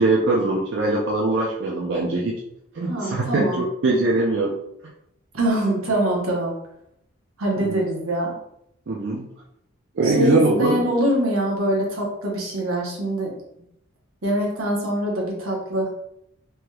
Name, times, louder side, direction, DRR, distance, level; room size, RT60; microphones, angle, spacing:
voice 1, 0.0-2.3 2.7-4.6 7.6-7.8 8.9-9.3 10.0-10.8, right 2 dB, 55° right, -3 dB, 0.4 m, -22 dB
voice 2, 2.9-3.6 5.3-6.5 7.4-8.3 10.0-13.3 14.2-15.9, right 1 dB, 80° right, -2 dB, 1.0 m, -24 dB
3.4 x 2.9 x 2.3 m, 0.76 s
head